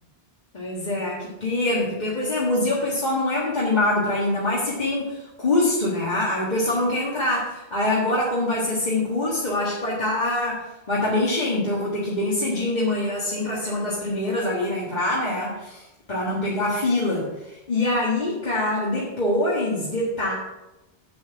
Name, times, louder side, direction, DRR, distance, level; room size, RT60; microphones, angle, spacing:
voice 1, 0.5-20.3, left 1 dB, 40° left, -6 dB, 1.8 m, -24 dB
8.3 x 7.7 x 4.6 m, 0.98 s
omnidirectional pair, 1.1 m